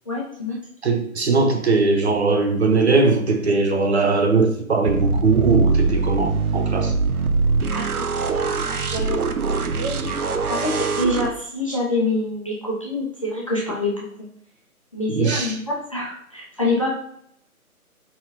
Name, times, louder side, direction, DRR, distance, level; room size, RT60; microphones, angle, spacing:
voice 1, 0.1-0.6 7.7-14.3 14.9-16.9, left 2 dB, 25° left, -5 dB, 0.5 m, -27 dB
voice 2, 0.8-6.9 15.1-15.5, right 3 dB, 50° right, 3 dB, 0.7 m, -20 dB
sound 1, 4.8-11.3, right 4 dB, 80° right, 0.7 m, -22 dB
4.5 x 4.0 x 2.6 m, 0.68 s
figure-of-eight pair, 150°, 44 cm